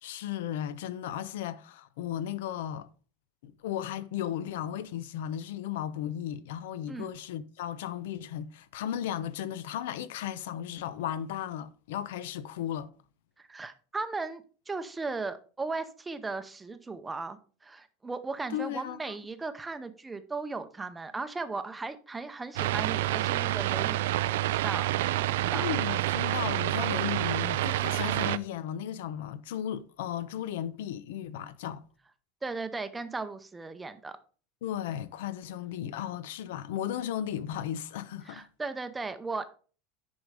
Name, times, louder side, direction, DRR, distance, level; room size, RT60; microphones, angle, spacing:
voice 1, 0.0-2.9 3.4-12.9 18.5-19.1 25.5-31.8 34.6-38.5, left 10 dB, 80° left, 0.7 m, -35 dB
voice 2, 13.4-25.7 32.4-34.2 38.3-39.5, right 3 dB, 10° right, 0.6 m, -37 dB
sound 1, 22.6-28.4, right 15 dB, 90° right, 0.4 m, -28 dB
9.9 x 5.4 x 4.8 m
supercardioid pair, 175°, 0 cm